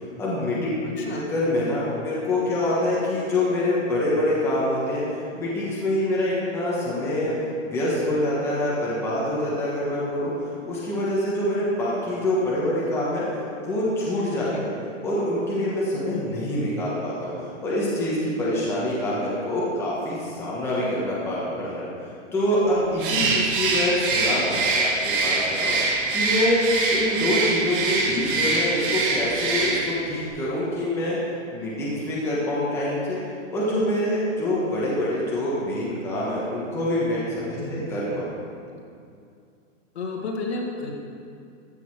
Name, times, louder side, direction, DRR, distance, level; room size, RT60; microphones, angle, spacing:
voice 1, 0.2-0.5 1.0-5.0 5.4-7.3 7.6-10.3 10.6-13.2 13.6-14.7 15.0-21.9 22.3-24.9 25.2-25.7 26.1-26.6 26.9-31.2 31.5-33.2 33.5-38.3, left 1 dB, 5° left, -8 dB, 1.5 m, -25 dB
voice 2, 0.8-1.3 14.4-14.6 23.1-23.4 37.6-37.9 39.9-40.9, left 3 dB, 55° left, 0 dB, 2.1 m, -32 dB
Bird, 23.0-30.0, right 3 dB, 40° right, 1.8 m, -24 dB
15.0 x 6.8 x 4.9 m, 2.4 s
hypercardioid pair, 165°, 38 cm